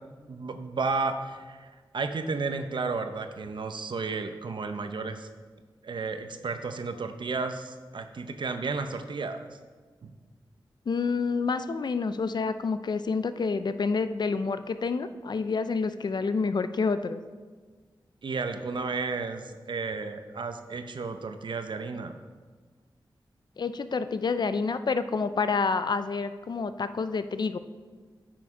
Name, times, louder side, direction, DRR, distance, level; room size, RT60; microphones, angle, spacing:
voice 1, 0.3-5.3 5.8-9.6 10.0-10.1 18.2-22.2, right 4 dB, 70° right, 8 dB, 0.7 m, -33 dB
voice 2, 10.9-17.2 23.6-27.6, left 4 dB, 55° left, 11 dB, 0.5 m, -28 dB
9.4 x 5.9 x 4.8 m, 1.5 s
wide cardioid pair, 75°, 9 cm